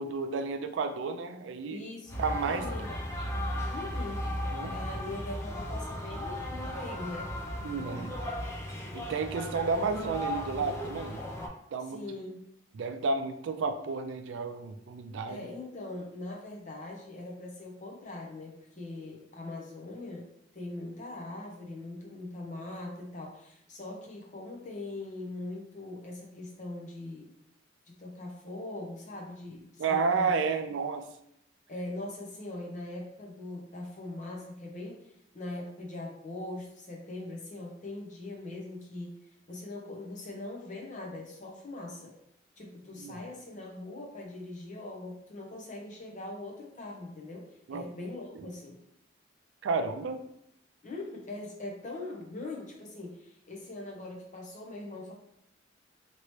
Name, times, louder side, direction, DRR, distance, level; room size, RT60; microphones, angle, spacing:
voice 1, 0.0-1.8 2.2-2.7 4.5-4.8 7.6-8.1 8.9-11.2 11.7-12.0 12.7-15.4 29.8-31.1 43.0-43.1 47.7-47.9 48.4-48.5 49.6-50.3, right 4 dB, 75° right, 8 dB, 0.3 m, -31 dB
voice 2, 1.7-3.0 3.7-4.2 4.7-7.3 7.7-8.1 11.9-12.4 15.3-20.3 20.5-27.3 28.0-30.3 31.7-35.0 35.3-39.2 39.5-42.2 42.6-48.8 50.8-55.1, left 2 dB, 40° left, -1 dB, 0.8 m, -41 dB
sound 1, 2.1-11.5, equal, 15° left, 0.5 m, -36 dB
3.0 x 2.9 x 3.0 m, 0.75 s
head